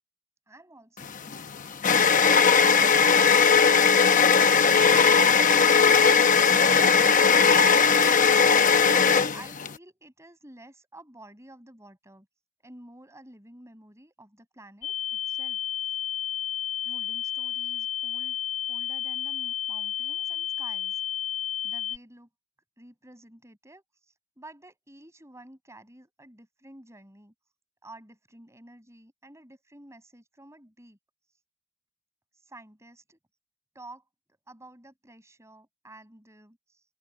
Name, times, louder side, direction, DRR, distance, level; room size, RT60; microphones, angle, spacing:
voice 1, 0.5-1.4 9.3-12.3 12.6-15.6 16.8-18.4 18.7-21.0 21.6-22.3 22.8-27.3 27.8-31.0 32.3-33.2 33.7-34.0 34.5-36.8, right 1 dB, 15° right, 6.2 m, -50 dB
sound 1, 1.0-9.7, left 6 dB, 40° left, 0.9 m, -19 dB
sound 2, 14.8-22.0, left 11 dB, 70° left, 1.6 m, -31 dB
open air
head